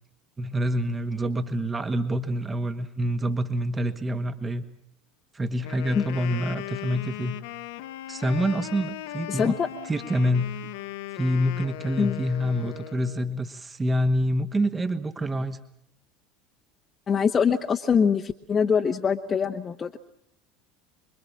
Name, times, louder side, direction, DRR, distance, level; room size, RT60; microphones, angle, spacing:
voice 1, 0.4-4.6 5.3-7.4 8.1-9.5 9.9-10.6 11.1-15.6, equal, 20° right, 10 dB, 1.5 m, -26 dB
Wind instrument woodwind instrument, 5.6-13.3, left 14 dB, 60° left, 1.1 m, -38 dB
voice 2, 9.3-9.7 12.0-12.2 17.1-20.0, left 6 dB, 30° left, 4 dB, 1.1 m, -23 dB
26.5 x 23.0 x 7.4 m, 0.77 s
figure-of-eight pair, 70°, 0 cm